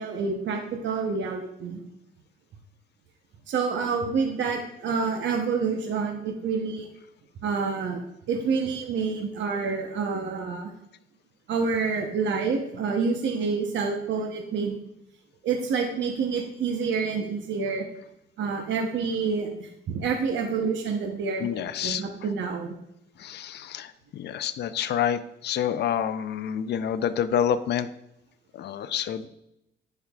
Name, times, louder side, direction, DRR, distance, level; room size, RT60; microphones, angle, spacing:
voice 1, 0.0-1.8 3.5-6.9 7.4-8.0 8.3-10.7 11.5-14.8 15.4-17.8 18.4-22.8, right 5 dB, 70° right, 2 dB, 0.9 m, -28 dB
voice 2, 21.4-22.0 23.2-27.9 28.5-29.3, left 9 dB, 60° left, 13 dB, 0.5 m, -28 dB
10.0 x 4.5 x 2.3 m, 0.80 s
cardioid pair, 90°, 20 cm